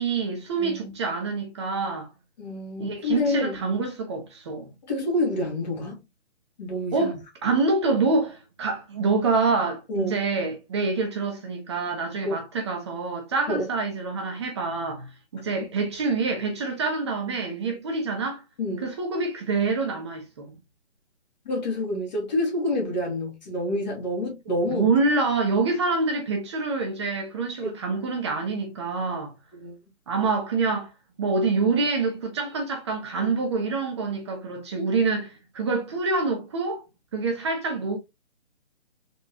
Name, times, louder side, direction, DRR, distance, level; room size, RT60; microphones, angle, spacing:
voice 1, 0.0-2.1 2.8-4.7 6.9-18.4 18.8-20.5 24.7-29.3 30.1-30.9 31.2-36.8 37.1-38.0, right 3 dB, 25° right, 0.8 m, -26 dB
voice 2, 0.6-1.0 2.4-3.6 4.9-6.0 6.6-7.2 9.9-10.2 12.2-12.4 13.5-13.6 18.6-18.9 21.5-24.9 27.6-27.7 29.5-29.8, left 1 dB, 40° left, 2.0 m, -28 dB
4.0 x 3.8 x 2.8 m
figure-of-eight pair, 135°, 35 cm